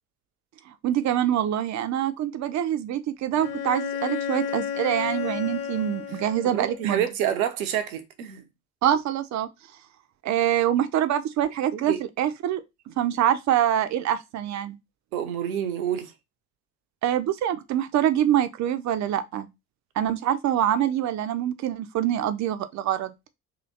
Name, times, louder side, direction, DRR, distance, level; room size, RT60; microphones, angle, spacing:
voice 1, 0.8-7.0 8.8-9.5 10.2-14.8 17.0-19.5 20.0-23.1, right 11 dB, 40° right, 0.6 m, -25 dB
Bowed string instrument, 3.4-6.9, left 8 dB, 75° left, 0.7 m, -32 dB
voice 2, 6.4-8.5 11.7-12.0 15.1-16.1, right 10 dB, 70° right, 0.8 m, -28 dB
3.0 x 2.9 x 3.9 m
figure-of-eight pair, 50°, 44 cm